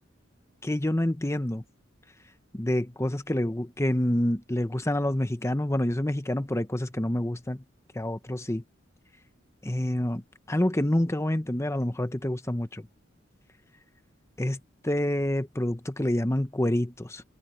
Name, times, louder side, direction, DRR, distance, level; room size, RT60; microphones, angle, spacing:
voice 1, 0.6-1.6 2.5-7.6 7.9-8.6 9.6-12.9 14.4-17.2, left 1 dB, 15° left, 1.0 m, -27 dB
head